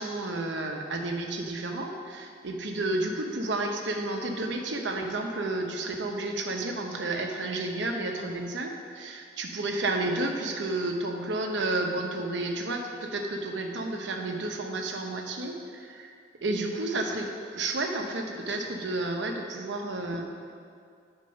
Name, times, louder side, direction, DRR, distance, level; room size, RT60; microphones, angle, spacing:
voice 1, 0.0-16.1 16.4-20.3, right 2 dB, 90° right, 2 dB, 0.8 m, -31 dB
8.5 x 4.4 x 5.3 m, 2.3 s
head